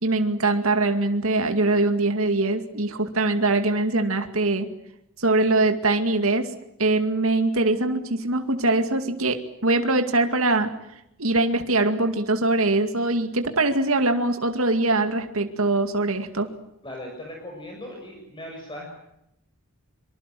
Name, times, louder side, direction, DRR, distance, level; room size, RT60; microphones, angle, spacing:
voice 1, 0.0-4.7 5.2-6.5 6.8-10.7 11.2-16.5, right 2 dB, 75° right, 6 dB, 2.3 m, -22 dB
voice 2, 16.8-18.9, left 1 dB, 20° left, 1 dB, 6.5 m, -38 dB
26.0 x 25.0 x 7.7 m, 0.81 s
head